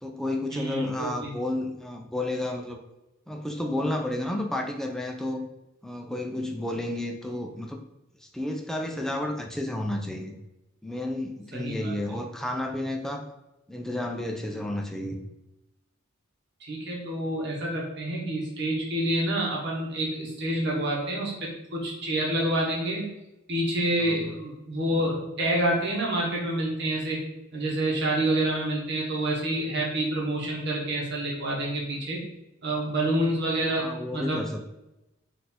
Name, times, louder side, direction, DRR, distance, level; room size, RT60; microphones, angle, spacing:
voice 1, 0.0-2.8 3.3-5.5 5.8-7.8 8.2-10.4 10.8-13.2 13.7-15.2 24.0-24.3 33.7-34.7, left 1 dB, ahead, 2 dB, 0.4 m, -31 dB
voice 2, 0.5-1.3 11.5-11.9 16.6-23.1 23.5-27.2 27.5-32.2 32.6-34.4, right 1 dB, 55° right, -3 dB, 1.1 m, -28 dB
4.1 x 2.6 x 4.2 m, 0.94 s
head